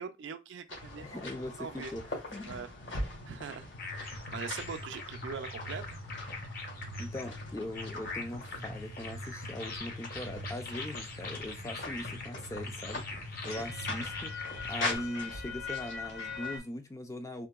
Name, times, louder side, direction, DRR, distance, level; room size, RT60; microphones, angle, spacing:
voice 1, 0.0-1.3 1.6-1.9 2.4-2.7 3.3-6.0, right 6 dB, 65° right, 0.4 m, -42 dB
sound 1, 0.7-16.6, left 3 dB, 70° left, 1.5 m, -41 dB
voice 2, 1.0-2.6 7.0-17.5, left 1 dB, 15° left, 0.3 m, -41 dB
sound 2, 3.8-15.0, left 2 dB, 50° left, 0.7 m, -41 dB
3.7 x 2.6 x 2.3 m
head